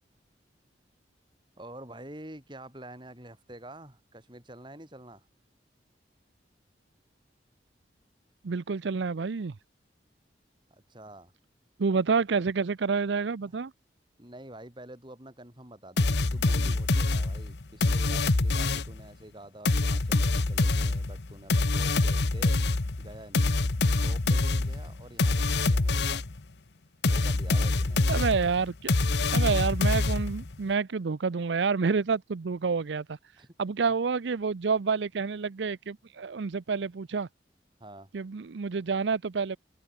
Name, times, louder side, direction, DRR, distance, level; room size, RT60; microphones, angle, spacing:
voice 1, 1.6-5.3 10.7-11.3 13.4-13.6 14.2-22.6 23.0-23.5 23.9-26.2 27.0-28.0 33.4-33.5 37.8-38.1, right 1 dB, 25° right, 5.2 m, -47 dB
voice 2, 8.4-9.6 11.8-13.7 28.1-28.9 29.3-33.2 33.6-37.3 38.1-39.6, right 5 dB, 80° right, 0.6 m, -28 dB
sound 1, 16.0-19.0 19.7-26.4 27.0-30.5, left 2 dB, 70° left, 1.0 m, -25 dB
head